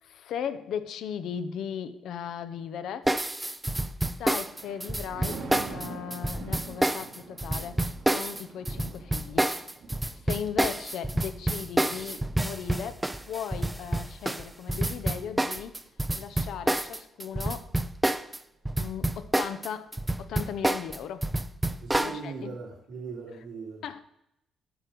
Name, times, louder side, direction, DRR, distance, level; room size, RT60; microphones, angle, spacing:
voice 1, 0.0-3.2 4.2-5.4 5.7-7.8 8.1-9.5 10.1-15.8 16.1-17.7 18.8-21.3 22.0-22.6 23.8-24.0, left 8 dB, 75° left, 0.7 m, -37 dB
sound 1, 3.1-18.4 18.6-22.2, right 1 dB, 10° right, 0.5 m, -28 dB
Thunder, 4.2-15.5 16.0-16.3, right 4 dB, 70° right, 2.0 m, -46 dB
voice 2, 21.8-23.8, right 4 dB, 90° right, 3.7 m, -39 dB
9.0 x 6.2 x 5.1 m
cardioid pair, 90°, 0 cm